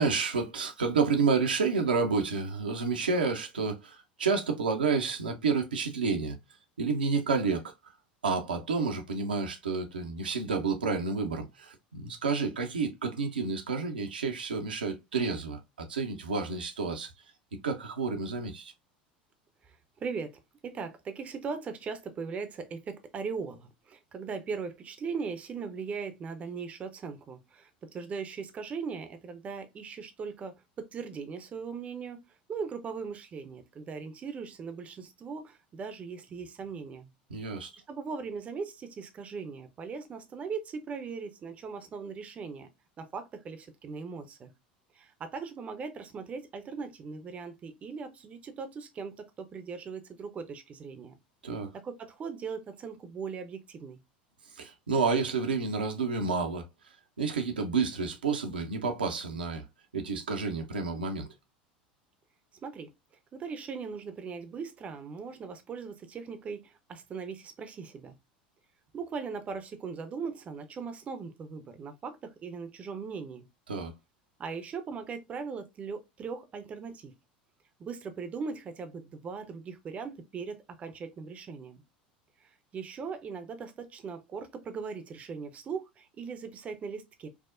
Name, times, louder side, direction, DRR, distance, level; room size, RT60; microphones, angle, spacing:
voice 1, 0.0-6.4 6.8-7.9 8.2-17.1 17.6-18.7 37.3-37.7 51.4-51.7 54.6-56.7 57.2-59.6 59.9-61.3 73.7-73.9, right 4 dB, 75° right, 0.6 m, -30 dB
voice 2, 19.7-20.3 20.6-32.2 32.5-37.1 37.9-42.7 43.0-44.5 44.9-51.1 51.7-54.0 62.6-62.9 63.3-68.1 68.9-73.5 74.4-77.1 77.8-81.8 82.4-87.3, right 5 dB, 25° right, 0.6 m, -39 dB
4.7 x 2.0 x 2.5 m
figure-of-eight pair, 75°, 5 cm